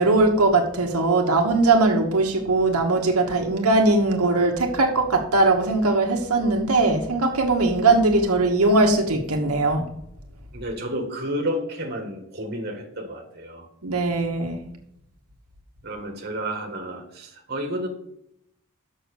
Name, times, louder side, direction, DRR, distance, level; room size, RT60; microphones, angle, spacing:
voice 1, 0.0-9.8 13.8-14.6, right 2 dB, 85° right, 1 dB, 1.3 m, -20 dB
voice 2, 10.5-13.7 15.8-17.9, equal, 45° right, 2 dB, 1.6 m, -31 dB
6.7 x 6.1 x 6.3 m, 0.75 s
head